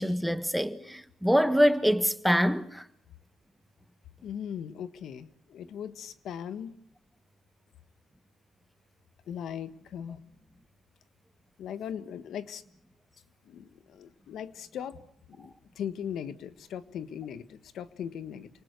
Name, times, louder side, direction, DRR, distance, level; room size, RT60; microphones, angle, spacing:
voice 1, 0.0-2.8, equal, ahead, 1.5 m, -25 dB
voice 2, 4.2-6.8 9.3-10.2 11.6-12.6 13.4-15.0 15.3-18.5, left 8 dB, 75° left, 1.5 m, -39 dB
28.5 x 19.5 x 8.3 m
cardioid pair, 90°, 0 cm